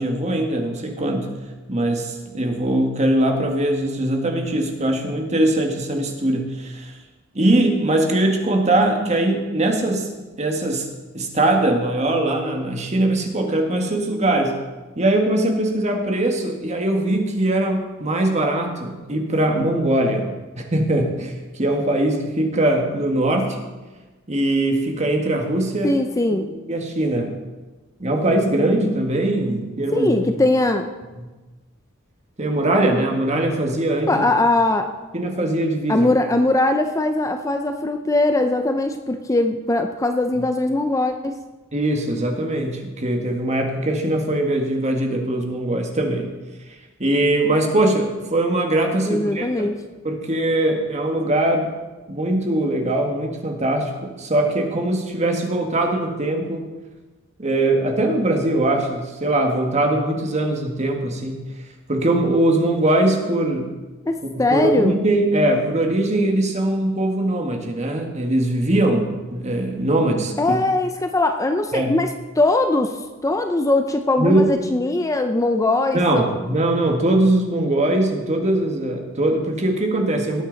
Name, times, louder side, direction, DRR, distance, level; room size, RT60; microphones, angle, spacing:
voice 1, 0.0-1.3 1.7-6.9 7.3-10.1 10.4-10.9 11.1-14.6 15.0-23.6 24.3-25.9 26.7-27.3 28.0-30.3 31.2-31.3 32.4-34.3 35.1-36.1 41.7-46.3 47.0-49.7 50.0-51.7 52.1-56.7 57.4-61.4 61.9-63.7 64.2-70.6 71.7-71.9 74.2-74.5 75.9-80.4, right 1 dB, 35° right, 2 dB, 1.7 m, -21 dB
voice 2, 25.8-26.5 29.9-30.9 34.1-34.9 35.9-41.3 49.1-49.8 64.0-65.0 70.4-73.0 73.2-76.3, left 2 dB, 15° left, 6 dB, 0.5 m, -20 dB
19.0 x 8.6 x 4.0 m, 1.2 s
head